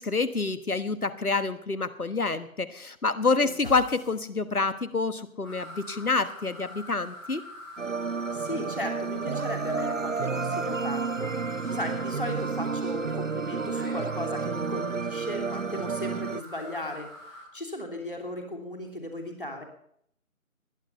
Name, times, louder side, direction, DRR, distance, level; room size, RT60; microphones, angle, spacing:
voice 1, 0.0-7.4, left 3 dB, 90° left, 13 dB, 1.5 m, -27 dB
sound 1, 3.6-4.9, left 1 dB, 70° left, 4.4 m, -45 dB
sound 2, 5.4-17.4, equal, 15° left, 5.6 m, -44 dB
sound 3, 7.8-16.4, right 5 dB, 65° right, 0.5 m, -31 dB
voice 2, 8.3-17.1 17.5-19.6, left 1 dB, 35° left, 3 dB, 3.0 m, -36 dB
20.0 x 10.0 x 5.8 m, 0.70 s
figure-of-eight pair, 175°, 43 cm